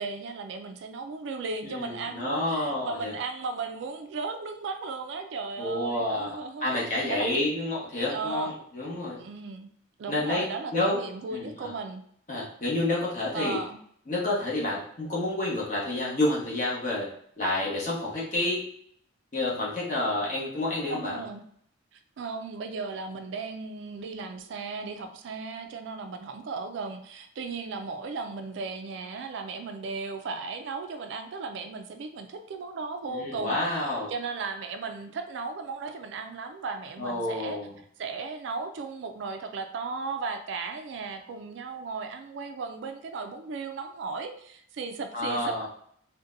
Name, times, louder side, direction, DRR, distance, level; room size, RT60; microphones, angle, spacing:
voice 1, 0.0-7.5 8.1-8.5 9.2-9.7 10.0-12.0 13.3-13.8 20.9-21.4 22.2-37.6 38.0-45.7, right 4 dB, 65° right, 7 dB, 0.3 m, -36 dB
voice 2, 1.6-3.1 5.6-9.2 10.1-10.5 10.7-11.0 11.3-11.7 12.3-13.6 14.1-17.1 17.4-18.6 19.3-21.2 33.1-34.1 37.0-37.7 45.1-45.7, left 2 dB, 40° left, -5 dB, 1.0 m, -29 dB
3.9 x 2.1 x 2.5 m, 0.65 s
head